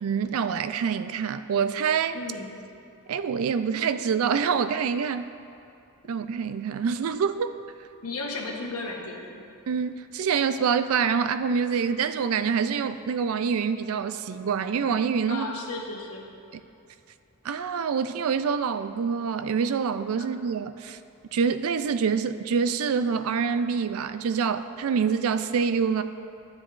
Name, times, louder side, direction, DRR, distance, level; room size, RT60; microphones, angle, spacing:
voice 1, 0.0-2.2 3.1-5.3 6.1-7.5 9.7-15.5 16.5-16.6 17.4-21.0 21.3-26.0, right 6 dB, 70° right, 11 dB, 0.4 m, -26 dB
voice 2, 2.1-2.5 8.0-9.4 15.3-16.3 20.2-20.3, left 3 dB, 90° left, 0 dB, 1.1 m, -34 dB
13.0 x 7.4 x 2.5 m, 2.6 s
head